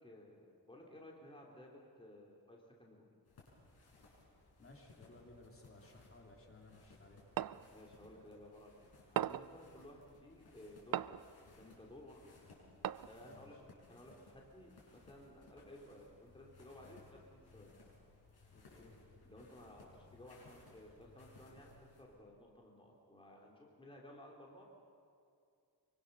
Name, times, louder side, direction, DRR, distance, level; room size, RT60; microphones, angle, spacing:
voice 1, 0.0-3.1 7.7-12.4 13.1-17.7 19.2-24.6, left 1 dB, 15° left, -1 dB, 3.0 m, -57 dB
sound 1, 3.2-22.0, left 3 dB, 75° left, 6.8 m, -63 dB
voice 2, 4.6-7.3 13.2-13.6 18.5-19.0, left 2 dB, 35° left, 0 dB, 3.3 m, -59 dB
sound 2, 7.4-7.7 9.2-9.6 10.9-11.3 12.8-13.2, right 11 dB, 65° right, 0.5 m, -38 dB
25.0 x 24.0 x 6.7 m, 2.4 s
wide cardioid pair, 155°, 38 cm